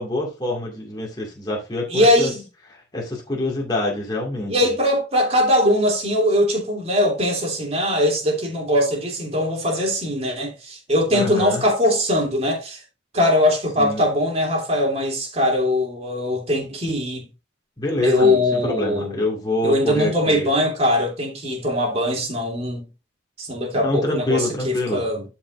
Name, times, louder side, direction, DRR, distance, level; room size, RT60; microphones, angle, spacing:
voice 1, 0.0-2.3 2.9-4.7 11.1-11.7 13.8-14.0 17.8-20.5 23.7-25.0, left 1 dB, 20° left, 2.2 m, -26 dB
voice 2, 1.9-2.4 4.5-12.8 13.1-17.3 18.0-19.2 19.6-22.9 23.4-25.2, left 1 dB, 30° right, 3.0 m, -21 dB
11.5 x 5.3 x 2.6 m
head